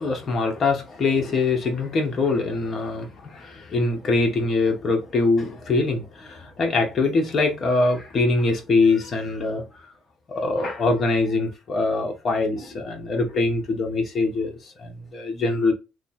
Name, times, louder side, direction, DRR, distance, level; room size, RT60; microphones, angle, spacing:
voice 1, 0.0-9.6 10.3-15.7, left 3 dB, 40° left, 1.1 m, -23 dB
3.2 x 2.0 x 4.1 m
cardioid pair, 115°, 0 cm